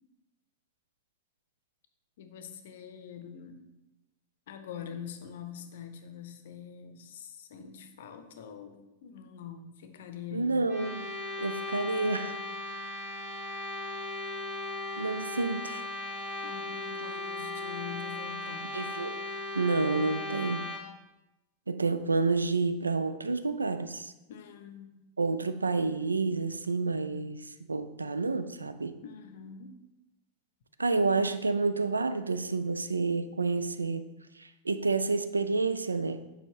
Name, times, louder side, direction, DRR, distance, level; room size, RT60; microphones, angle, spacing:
voice 1, 2.2-3.6 4.5-10.7 16.4-18.7 24.3-25.0 29.0-29.8, left 8 dB, 55° left, 8 dB, 0.6 m, -44 dB
voice 2, 10.3-11.0 11.4-12.4 12.7-12.8 15.0-15.8 18.7-19.1 19.6-20.6 21.7-24.1 25.2-28.9 30.8-34.1 34.4-36.2, right 3 dB, 80° right, 11 dB, 0.3 m, -29 dB
sound 1, 10.7-20.8, left 2 dB, 25° right, 1.8 m, -37 dB
6.9 x 5.3 x 2.9 m, 0.99 s
figure-of-eight pair, 90°, 0 cm